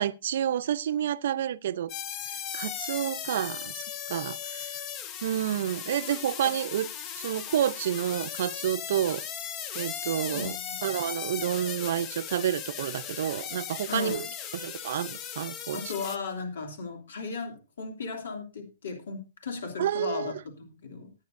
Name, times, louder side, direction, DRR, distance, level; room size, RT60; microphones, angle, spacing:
voice 1, 0.0-1.9 2.5-3.8 4.1-4.8 5.2-6.9 7.2-9.2 9.7-10.5 10.8-14.3 14.5-15.8 19.8-20.3, right 10 dB, 60° right, 0.7 m, -29 dB
sound 1, 1.9-16.2, left 9 dB, 25° left, 0.6 m, -37 dB
voice 2, 10.3-10.9 13.9-14.3 15.7-21.1, left 4 dB, 80° left, 2.9 m, -36 dB
19.5 x 9.0 x 2.6 m
hypercardioid pair, 170°, 0 cm